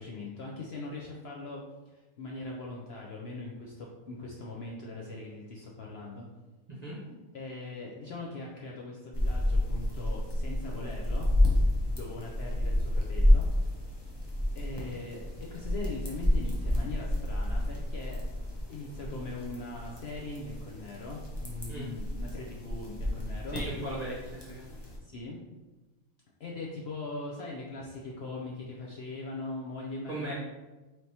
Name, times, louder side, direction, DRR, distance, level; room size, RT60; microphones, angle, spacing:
voice 1, 0.0-1.6 1.9-6.3 7.3-11.3 11.9-13.5 14.5-18.2 18.7-23.6 25.0-25.4 26.4-30.3, left 2 dB, 65° left, -2 dB, 0.7 m, -40 dB
voice 2, 6.7-7.0 21.7-21.9 23.5-24.7 30.1-30.3, right 1 dB, 40° right, -5 dB, 0.6 m, -37 dB
sound 1, 9.1-25.0, left 1 dB, 30° left, 0.5 m, -30 dB
4.4 x 3.2 x 2.8 m, 1.1 s
omnidirectional pair, 1.5 m